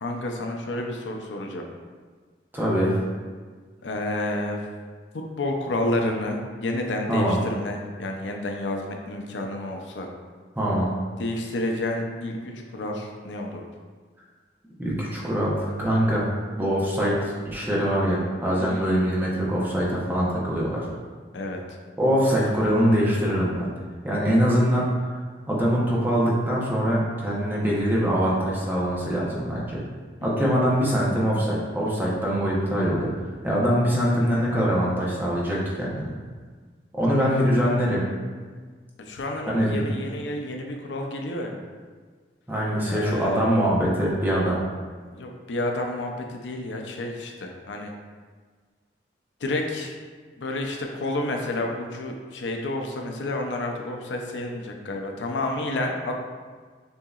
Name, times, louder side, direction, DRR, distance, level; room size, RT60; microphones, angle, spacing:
voice 1, 0.0-1.6 3.8-4.7 5.1-10.1 11.2-13.7 18.6-18.9 21.3-21.6 30.2-30.5 37.1-37.3 39.0-41.5 42.9-43.4 45.1-47.9 49.4-50.0 50.4-56.1, left 1 dB, 90° left, 2 dB, 0.5 m, -30 dB
voice 2, 2.5-3.0 7.1-7.4 10.6-10.9 14.8-16.3 16.6-20.9 22.0-23.7 24.0-29.8 30.2-33.1 33.4-36.1 36.9-38.1 39.5-39.9 42.5-44.6, equal, 10° right, -6 dB, 0.8 m, -23 dB
6.7 x 2.8 x 2.4 m, 1.5 s
head